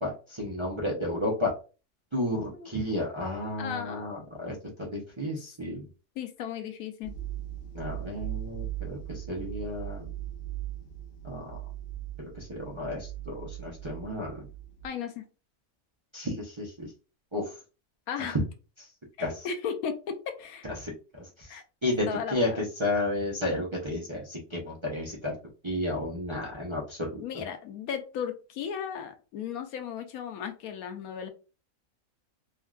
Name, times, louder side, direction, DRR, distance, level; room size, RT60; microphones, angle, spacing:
voice 1, 0.0-1.5 2.1-5.9 7.7-10.1 11.2-11.6 12.2-14.5 16.1-16.9 17.3-17.5 18.2-18.4 18.8-18.9 19.2-19.5 20.6-25.3 25.6-27.2, left 1 dB, 35° right, -4 dB, 0.5 m, -32 dB
voice 2, 3.6-4.1 6.2-7.1 14.8-15.2 18.1-18.4 19.2-20.7 21.5-21.6 22.1-22.7 27.2-31.3, left 7 dB, 85° left, 7 dB, 1.1 m, -35 dB
sound 1, 7.0-14.9, right 13 dB, 65° left, 0.6 m, -39 dB
3.5 x 2.4 x 2.3 m, 0.33 s
omnidirectional pair, 1.5 m